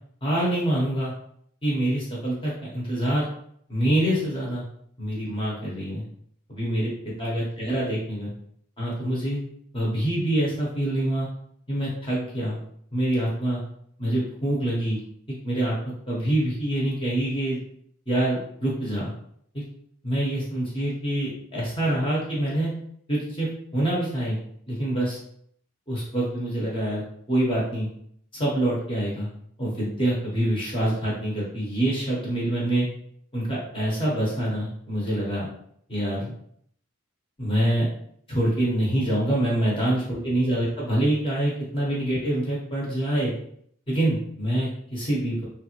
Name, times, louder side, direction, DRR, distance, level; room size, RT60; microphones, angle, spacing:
voice 1, 0.2-1.1 1.6-3.3 3.7-4.6 5.0-6.0 6.5-8.3 8.8-9.4 9.7-11.3 11.7-12.6 12.9-13.6 14.0-15.0 15.3-15.7 16.1-17.6 18.1-19.1 19.5-19.6 20.0-22.7 23.1-24.4 24.7-25.2 25.9-27.9 28.3-29.3 29.6-32.9 33.3-35.5 35.9-36.3 37.4-37.9 38.3-43.3 43.9-45.5, right 1 dB, 25° left, -5 dB, 0.9 m, -25 dB
3.3 x 2.4 x 3.0 m, 0.66 s
head